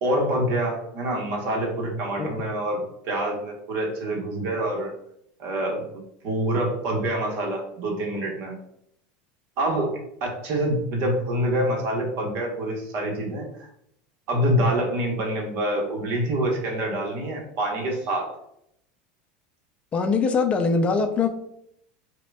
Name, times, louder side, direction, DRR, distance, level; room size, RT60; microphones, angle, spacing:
voice 1, 0.0-4.9 5.4-5.8 6.2-8.6 9.6-13.7 14.3-18.4, right 1 dB, 55° right, 0 dB, 1.0 m, -26 dB
voice 2, 19.9-21.3, left 4 dB, 25° left, 6 dB, 0.4 m, -22 dB
5.0 x 2.2 x 2.2 m, 0.73 s
supercardioid pair, 130°, 5 cm